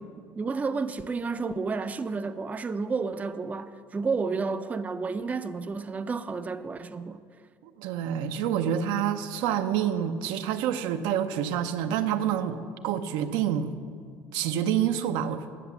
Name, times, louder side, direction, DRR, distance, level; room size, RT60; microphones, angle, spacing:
voice 1, 0.3-7.2, right 4 dB, 20° right, 0.4 m, -31 dB
voice 2, 7.6-12.6 12.8-13.7 14.3-15.4, right 9 dB, 80° right, 0.6 m, -27 dB
10.0 x 7.4 x 7.0 m
cardioid pair, 110°, 7 cm